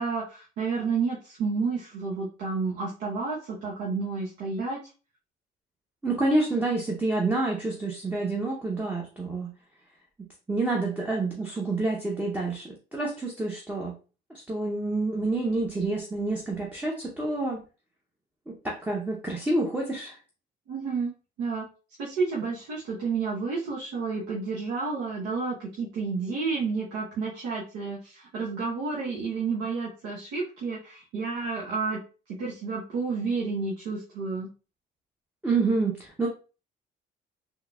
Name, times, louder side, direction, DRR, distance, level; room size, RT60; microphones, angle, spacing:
voice 1, 0.0-4.8 20.7-21.1 21.4-21.7 22.0-32.0 32.3-34.5, right 4 dB, 90° right, -4 dB, 0.8 m, -30 dB
voice 2, 6.0-9.5 10.5-13.9 14.3-17.6 18.5-20.2 35.4-36.3, right 2 dB, 10° right, -1 dB, 0.6 m, -28 dB
3.7 x 2.7 x 2.2 m, 0.34 s
cardioid pair, 110°, 17 cm